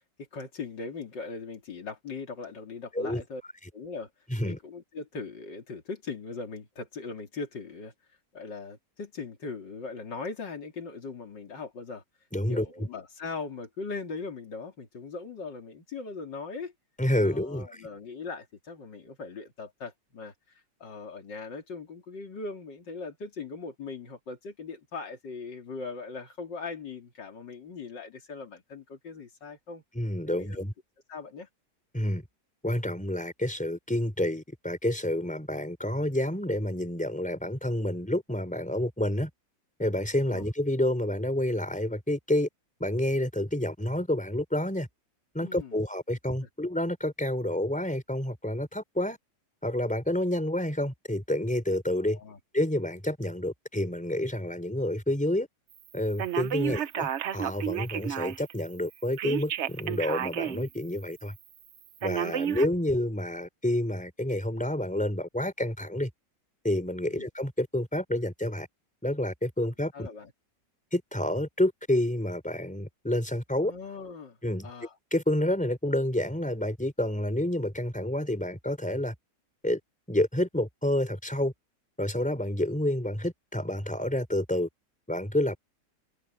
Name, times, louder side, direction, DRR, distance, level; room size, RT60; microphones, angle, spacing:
voice 1, 0.2-3.4 3.7-4.1 4.4-7.9 8.3-12.0 12.5-16.7 17.2-29.8 30.3-30.6 31.1-31.5 40.3-40.5 45.4-45.8 52.1-52.4 56.6-56.8 62.8-62.9 67.1-67.3 69.9-70.3 73.7-74.4 74.6-75.0, left 4 dB, 85° left, 3.4 m, -40 dB
voice 2, 12.3-12.9 17.0-17.9 29.9-30.7 31.9-32.2 32.6-39.3 39.8-42.5 42.8-44.9 45.3-49.2 49.6-52.2 52.5-55.5 55.9-61.3 62.0-66.1 66.6-68.7 69.0-70.1 70.9-73.7 74.4-74.7 75.1-79.1 79.6-79.8 80.1-81.5 82.0-84.7 85.1-85.6, left 1 dB, 5° left, 4.1 m, -29 dB
Telephone, 56.2-58.5 59.2-60.7 61.1-61.2 62.0-62.7, right 10 dB, 60° right, 0.7 m, -31 dB
omnidirectional pair, 1.9 m